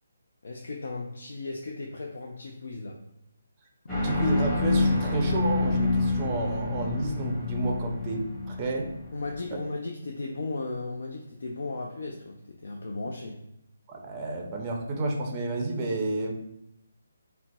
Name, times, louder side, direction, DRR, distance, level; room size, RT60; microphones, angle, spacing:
voice 1, 0.4-3.0 9.1-13.4, left 3 dB, 70° left, 1 dB, 0.4 m, -36 dB
sound 1, 3.9-9.4, left 3 dB, 10° left, 1.2 m, -28 dB
voice 2, 4.0-8.9 13.9-16.3, right 2 dB, 20° right, 0 dB, 0.5 m, -30 dB
3.8 x 2.0 x 2.2 m, 0.83 s
hypercardioid pair, 155°, 0 cm